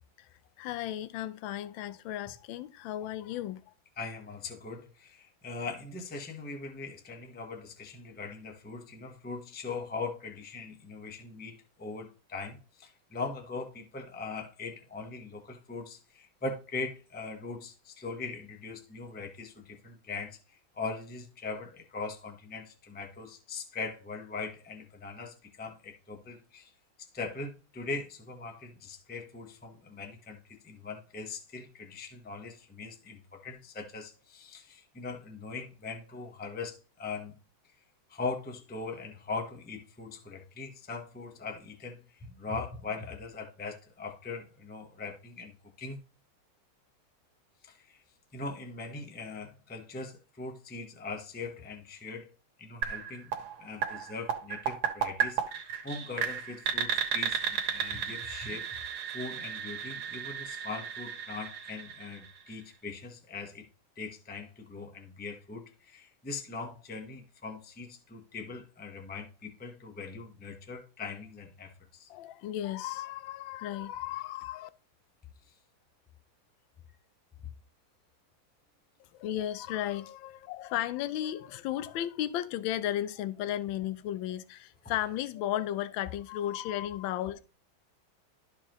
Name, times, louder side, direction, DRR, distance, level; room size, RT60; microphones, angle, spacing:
voice 1, 0.6-3.6 72.1-74.7 79.1-87.4, left 12 dB, 75° left, 1.3 m, -34 dB
voice 2, 4.0-26.7 27.0-37.3 38.1-46.0 47.6-48.0 48.3-52.3 52.6-55.4 55.8-58.7 59.1-63.7 64.0-72.1 75.5-75.6, left 4 dB, 10° left, 0.4 m, -41 dB
sound 1, 52.8-62.6, right 8 dB, 90° right, 1.9 m, -34 dB
13.0 x 4.6 x 3.0 m
omnidirectional pair, 2.3 m